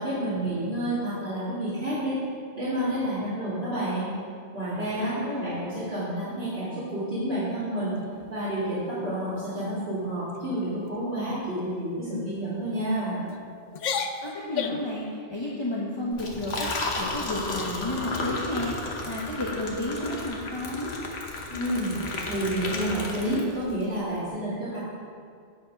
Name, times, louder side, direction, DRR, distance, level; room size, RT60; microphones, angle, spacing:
voice 1, 0.0-2.2 2.6-4.1 4.5-7.9 8.3-13.2 21.5-22.0 22.3-24.8, right 1 dB, 70° right, -14 dB, 2.9 m, -29 dB
voice 2, 5.0-5.6 14.2-20.9, left 1 dB, 25° left, -5 dB, 1.0 m, -32 dB
sound 1, 8.0-8.6 9.0-9.3 9.6-9.9 10.3-10.6 11.3-11.6 12.1-12.3 13.0-13.4 13.7-14.9, left 6 dB, 55° left, 0.5 m, -34 dB
Liquid, 16.1-23.8, left 2 dB, 80° left, 1.3 m, -33 dB
8.8 x 6.0 x 5.2 m, 2.2 s
omnidirectional pair, 1.1 m